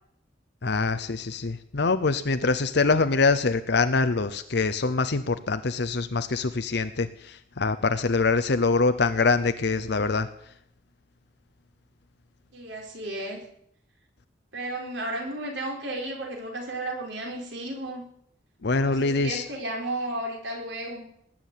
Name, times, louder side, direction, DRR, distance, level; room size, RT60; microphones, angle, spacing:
voice 1, 0.6-10.3 18.6-19.4, left 4 dB, 60° left, 10 dB, 0.8 m, -24 dB
voice 2, 12.5-13.4 14.5-18.0 18.7-21.1, right 1 dB, 70° right, 1 dB, 4.6 m, -33 dB
19.5 x 7.6 x 9.2 m, 0.71 s
head